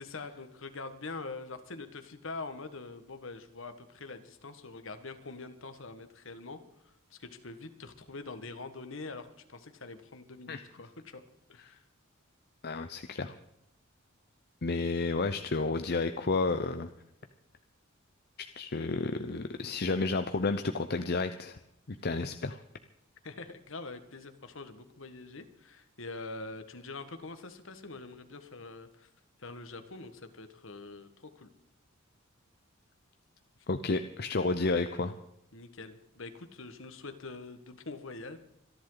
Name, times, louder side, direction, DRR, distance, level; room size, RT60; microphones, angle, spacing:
voice 1, 0.0-11.2 11.5-11.8 23.2-29.1 29.4-31.5 35.5-38.4, left 3 dB, 65° left, 9 dB, 1.6 m, -44 dB
voice 2, 12.6-13.3 14.6-16.9 18.4-21.6 21.9-22.6 33.7-35.1, left 3 dB, 50° left, 8 dB, 0.8 m, -31 dB
26.0 x 11.0 x 4.0 m, 0.80 s
head